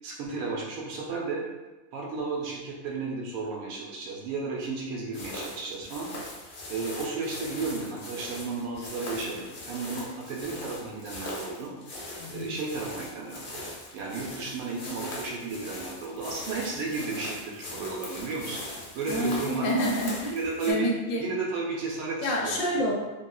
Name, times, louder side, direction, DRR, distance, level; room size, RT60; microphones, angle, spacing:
voice 1, 0.0-1.4 1.9-6.4 6.7-11.7 12.3-19.9 20.3-20.9 21.2-22.7, right 4 dB, 80° right, -2 dB, 1.0 m, -33 dB
sound 1, 5.1-20.7, left 1 dB, 50° left, 0.7 m, -40 dB
voice 2, 12.2-12.6 19.1-20.3 20.7-21.2 22.2-22.9, equal, 75° left, -1 dB, 1.0 m, -28 dB
3.0 x 2.7 x 2.2 m, 1.1 s
omnidirectional pair, 1.5 m